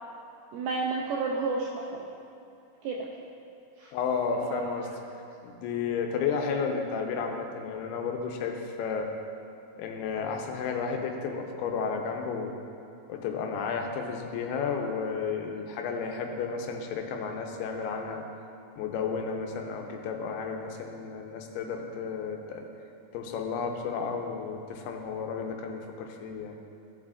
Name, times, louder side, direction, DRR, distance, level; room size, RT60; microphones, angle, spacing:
voice 1, 0.5-2.1 2.8-3.1 3.8-3.9 4.4-4.7, right 3 dB, 85° right, -1 dB, 1.9 m, -31 dB
voice 2, 3.9-4.9 5.4-9.1 9.8-12.5 13.1-18.2 18.8-22.7 23.1-26.5, left 5 dB, 85° left, 3 dB, 2.7 m, -32 dB
15.5 x 7.4 x 2.5 m, 2.7 s
omnidirectional pair, 4.6 m